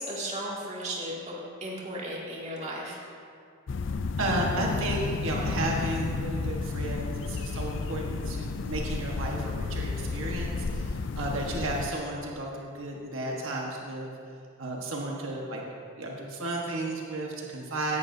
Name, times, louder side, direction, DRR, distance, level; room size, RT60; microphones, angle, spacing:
voice 1, 0.0-3.0 11.2-11.4, right 1 dB, 35° right, -5 dB, 2.3 m, -36 dB
sound 1, 3.7-11.9, left 4 dB, 65° left, 0.4 m, -32 dB
voice 2, 4.2-14.1 14.6-15.6 16.0-18.0, right 2 dB, 85° right, -2 dB, 1.3 m, -33 dB
17.0 x 11.0 x 2.7 m, 2.3 s
head